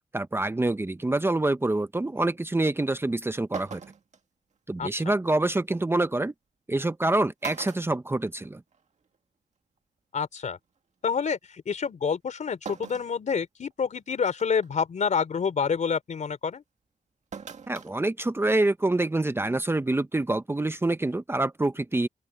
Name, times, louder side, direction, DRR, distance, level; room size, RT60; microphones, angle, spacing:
voice 1, 0.1-3.8 4.7-6.3 6.7-8.6 17.7-22.1, right 2 dB, 20° right, 0.7 m, -26 dB
sound 1, 3.0-3.1 3.5-4.2 5.8-5.9 6.9-7.0 7.4-8.8 9.1-9.2 10.5-10.6 12.7-13.2 13.7-13.8 14.4-14.7 17.3-17.9 18.3-18.4, right 6 dB, 60° right, 1.9 m, -40 dB
voice 2, 10.1-10.6 11.0-16.6, left 6 dB, 70° left, 3.7 m, -28 dB
open air
cardioid pair, 85°, 13 cm